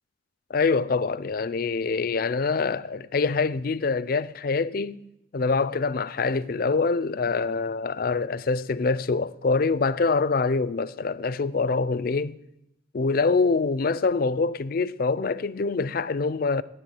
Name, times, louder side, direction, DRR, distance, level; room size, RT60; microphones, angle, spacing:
voice 1, 0.5-5.0 5.3-12.4 12.9-16.6, left 4 dB, 50° left, 0.4 m, -25 dB
10.0 x 8.0 x 9.3 m
head